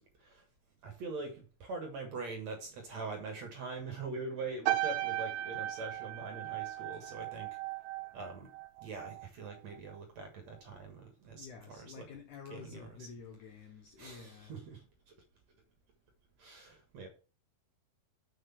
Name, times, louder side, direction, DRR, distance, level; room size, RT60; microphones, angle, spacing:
voice 1, 0.8-7.6 8.1-8.5 8.8-12.1 12.5-13.1 14.0-15.1 16.4-17.1, right 3 dB, 55° right, 2.1 m, -43 dB
sound 1, 4.6-9.3 9.5-9.9, right 14 dB, 80° right, 2.2 m, -37 dB
voice 2, 11.4-14.5, left 5 dB, 80° left, 1.7 m, -50 dB
7.1 x 6.4 x 5.6 m
omnidirectional pair, 4.8 m